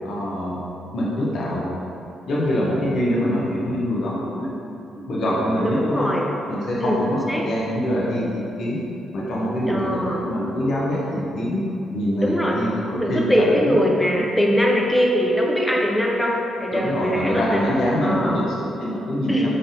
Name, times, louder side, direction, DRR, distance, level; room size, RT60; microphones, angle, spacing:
voice 1, 0.0-0.6 0.9-1.7 2.3-6.1 6.5-8.8 9.1-13.8 14.2-14.3 16.7-19.5, equal, 60° left, -5 dB, 0.7 m, -24 dB
voice 2, 5.6-6.3 6.8-7.4 9.7-10.2 12.2-12.6 13.0-17.6 18.0-18.4 19.3-19.5, equal, 5° left, -2 dB, 0.5 m, -22 dB
4.0 x 3.2 x 2.7 m, 2.7 s
cardioid pair, 90°, 0 cm